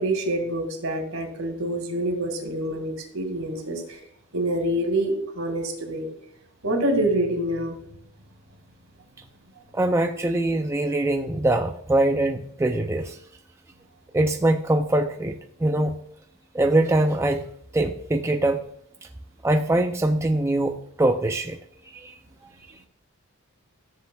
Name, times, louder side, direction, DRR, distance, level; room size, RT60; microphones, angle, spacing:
voice 1, 0.0-3.8 4.3-6.1 6.6-7.8, right 1 dB, 65° right, 4 dB, 2.1 m, -26 dB
voice 2, 9.7-13.2 14.1-16.0 16.5-17.4 17.7-18.6 19.4-21.6 21.9-22.1, right 1 dB, 10° right, 5 dB, 0.4 m, -23 dB
14.0 x 7.4 x 2.3 m, 0.71 s
head